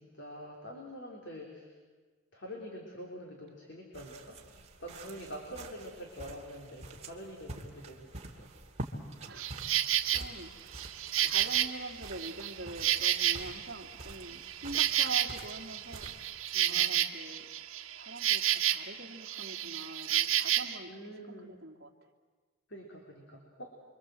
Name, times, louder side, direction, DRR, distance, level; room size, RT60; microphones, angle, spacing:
voice 1, 0.0-1.7 2.3-4.4 4.8-8.5 11.2-11.4 14.6-14.9 16.5-17.0 20.9-21.5 22.7-23.7, equal, 55° left, 0 dB, 3.6 m, -46 dB
sound 1, 3.9-16.7, right 1 dB, 30° right, 2.3 m, -47 dB
voice 2, 9.3-9.7 10.0-10.9 11.2-16.1 16.7-17.4 17.9-22.1, right 2 dB, 45° right, -1 dB, 2.7 m, -44 dB
Insect, 9.4-10.2 10.7-13.8 14.1-19.0 19.2-20.8, right 11 dB, 70° right, 1.5 m, -30 dB
29.5 x 24.0 x 7.8 m, 1.4 s
head